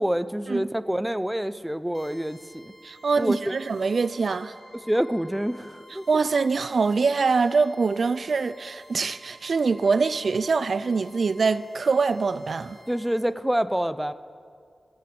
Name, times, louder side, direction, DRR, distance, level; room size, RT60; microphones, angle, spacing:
voice 1, 0.0-2.7 3.2-3.5 4.7-6.1 12.9-14.1, equal, 5° right, 0.5 m, -27 dB
sound 1, 1.9-13.2, equal, 30° left, 4.4 m, -52 dB
voice 2, 2.8-4.5 6.1-12.8, right 4 dB, 65° right, 0.4 m, -24 dB
15.0 x 8.7 x 8.7 m
wide cardioid pair, 80°, 0 cm